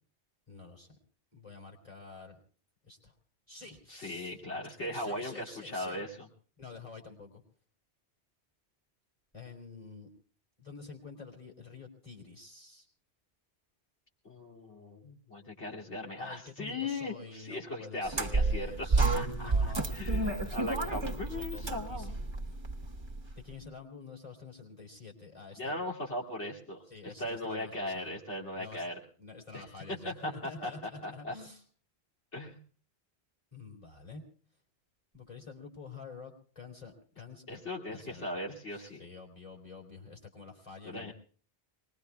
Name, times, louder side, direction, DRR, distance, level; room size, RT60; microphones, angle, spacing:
voice 1, 0.5-1.0 1.3-2.4 2.8-3.1 3.5-4.3 4.8-6.0 6.6-7.4 9.3-10.1 10.6-12.9 16.2-22.3 23.4-25.7 26.9-28.2 28.5-31.6 33.5-34.2 35.1-38.3 38.7-41.1, left 4 dB, 30° left, 2 dB, 3.3 m, -48 dB
voice 2, 3.9-6.3 14.2-22.2 25.6-28.9 29.5-29.6 30.0-31.3 32.3-32.6 37.5-39.0 40.8-41.1, left 1 dB, 85° left, -3 dB, 3.0 m, -39 dB
sound 1, 18.1-23.3, right 3 dB, 25° right, 1.1 m, -30 dB
27.0 x 20.0 x 2.3 m, 0.41 s
omnidirectional pair, 1.1 m